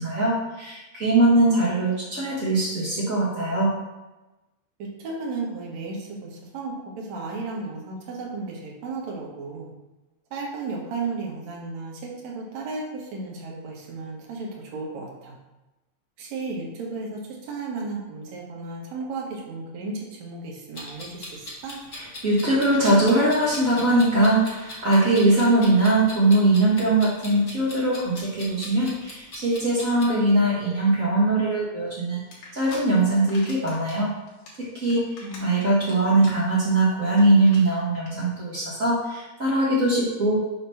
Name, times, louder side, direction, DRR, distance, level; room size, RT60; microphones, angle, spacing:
voice 1, 0.0-3.7 21.9-32.2 32.5-34.1 34.6-40.4, right 2 dB, 50° right, -7 dB, 0.9 m, -21 dB
voice 2, 4.8-6.2 6.5-9.7 10.3-15.1 16.2-17.2 17.5-21.3 21.6-21.8 35.2-35.6, right 3 dB, 70° right, -2 dB, 2.4 m, -34 dB
Clock, 20.7-30.1, left 1 dB, 45° left, 1.1 m, -40 dB
sound 1, 32.3-32.8 33.1-34.0 34.3-35.9 36.2-36.5 36.8-36.9 37.1-37.2 37.5-37.6 38.0-38.1, left 4 dB, 80° left, 2.9 m, -43 dB
6.6 x 2.9 x 5.6 m, 1.1 s
omnidirectional pair, 3.4 m